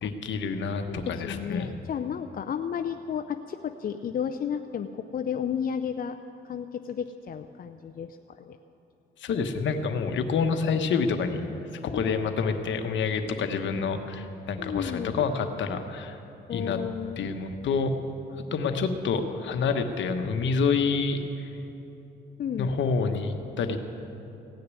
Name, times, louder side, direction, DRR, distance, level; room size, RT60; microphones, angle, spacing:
voice 1, 0.0-1.7 9.2-11.4 11.8-16.2 16.5-16.8 17.2-18.0 18.5-21.5 22.6-23.8, left 5 dB, 70° left, 7 dB, 1.1 m, -28 dB
voice 2, 0.9-6.2 6.4-8.6 11.9-12.5 14.6-15.2 16.5-17.3 19.1-19.5 22.4-22.7, left 8 dB, 45° left, 7 dB, 0.5 m, -33 dB
16.5 x 6.7 x 9.6 m, 3.0 s
cardioid pair, 90°, 20 cm